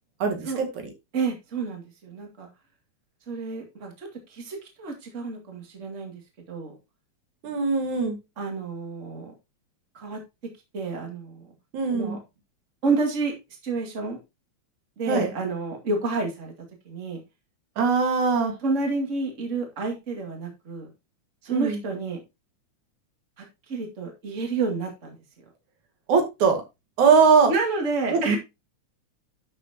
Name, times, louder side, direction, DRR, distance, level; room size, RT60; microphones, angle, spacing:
voice 1, 0.2-0.7 7.4-8.2 11.7-12.2 15.1-15.3 17.8-18.5 21.5-21.8 26.1-26.6 27.0-27.5 28.1-28.4, right 5 dB, 80° right, 4 dB, 3.2 m, -21 dB
voice 2, 1.1-2.5 3.3-6.2 6.5-6.8 8.4-9.3 9.9-10.2 10.7-11.5 11.9-12.2 12.8-13.3 13.6-14.2 15.0-16.5 16.8-17.2 18.6-20.9 21.4-22.2 23.4-25.2 27.5-28.4, right 3 dB, 25° right, 2 dB, 2.3 m, -29 dB
11.5 x 6.3 x 2.8 m, 0.24 s
omnidirectional pair, 3.3 m